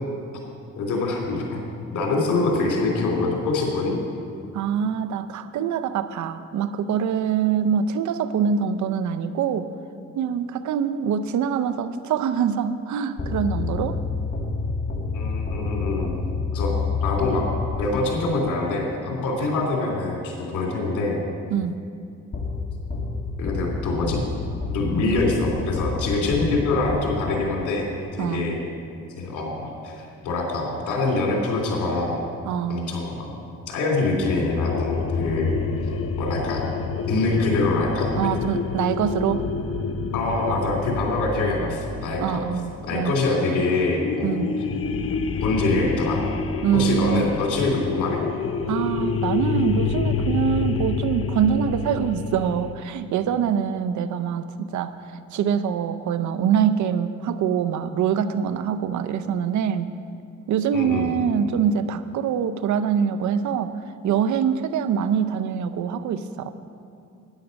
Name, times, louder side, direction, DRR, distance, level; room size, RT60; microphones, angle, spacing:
voice 1, 0.8-1.6 1.9-4.0 15.1-16.1 16.5-16.7 17.0-17.5 17.8-21.2 23.4-24.2 24.7-27.9 28.2-28.6 29.2-32.2 32.7-33.2 33.7-35.9 36.2-36.6 37.1-38.1 40.1-42.4 42.9-44.4 45.4-46.2 46.7-48.2 60.7-61.1, left 3 dB, 80° left, -1 dB, 2.9 m, -24 dB
voice 2, 4.5-9.7 10.1-14.0 21.5-21.8 28.2-28.6 32.4-32.9 38.2-39.4 42.2-43.1 44.2-44.6 46.6-47.2 48.7-54.9 55.3-59.9 60.5-63.8 64.0-66.5, right 8 dB, 75° right, 12 dB, 0.7 m, -24 dB
sound 1, 13.2-18.3 22.3-27.5, left 4 dB, 35° left, 1.5 m, -29 dB
sound 2, 34.2-43.3 44.0-52.7, left 5 dB, 50° left, 0.7 m, -28 dB
13.0 x 9.9 x 5.3 m, 2.4 s
cardioid pair, 90°, 30 cm